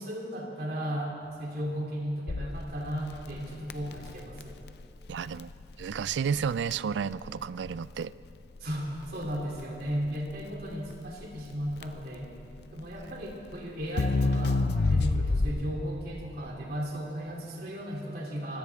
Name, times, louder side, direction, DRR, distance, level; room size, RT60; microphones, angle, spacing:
voice 1, 0.0-4.6 8.6-12.3 12.7-18.6, equal, 60° right, 3.0 m, -35 dB
Crackle, 2.3-15.9, left 3 dB, 65° left, 0.6 m, -31 dB
voice 2, 5.1-5.5 5.8-8.1, right 6 dB, 85° right, 0.3 m, -31 dB
23.5 x 17.0 x 3.5 m
head